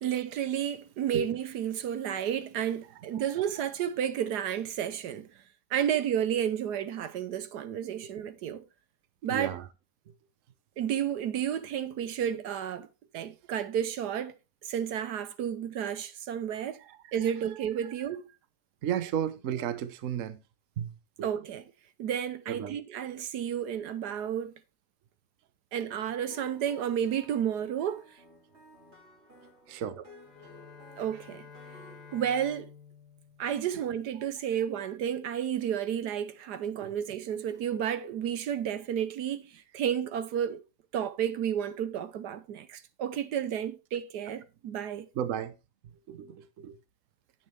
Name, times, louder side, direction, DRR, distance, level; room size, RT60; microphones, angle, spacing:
voice 1, 0.0-5.4 5.7-8.6 9.2-9.6 10.8-12.9 13.1-14.3 14.6-16.8 17.1-18.3 21.2-21.6 22.0-24.5 25.7-28.0 30.0-30.1 31.0-31.4 32.1-32.7 33.4-40.6 40.9-45.1, right 9 dB, 80° right, 1.4 m, -31 dB
voice 2, 9.3-9.6 16.8-17.3 18.8-20.4 20.8-21.3 22.5-22.8 29.7-30.0 33.7-33.8 36.8-37.0 45.1-45.5 46.1-46.8, right 9 dB, 55° right, 1.1 m, -34 dB
sound 1, 26.3-32.3, equal, 40° right, 2.8 m, -55 dB
Bowed string instrument, 30.1-34.3, left 6 dB, 80° left, 1.8 m, -52 dB
10.0 x 8.6 x 3.2 m
omnidirectional pair, 1.7 m